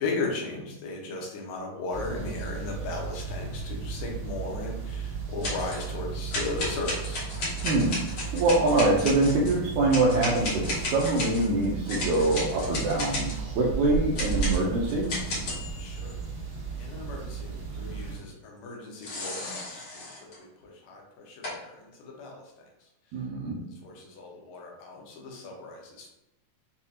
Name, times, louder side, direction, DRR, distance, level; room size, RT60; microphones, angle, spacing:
voice 1, 0.0-7.2 15.8-16.2 16.8-22.4 23.8-26.1, left 3 dB, 80° left, -1 dB, 2.5 m, -36 dB
sound 1, 1.9-18.2, right 6 dB, 55° right, 2.3 m, -35 dB
sound 2, 5.4-5.9 6.3-9.6 9.9-13.4 14.2-16.1 19.0-20.4 21.4-21.5, left 2 dB, 50° left, 1.8 m, -34 dB
voice 2, 7.6-15.1 23.1-23.6, right 2 dB, 80° right, -3 dB, 1.7 m, -24 dB
7.0 x 2.7 x 2.4 m, 0.90 s
omnidirectional pair, 4.0 m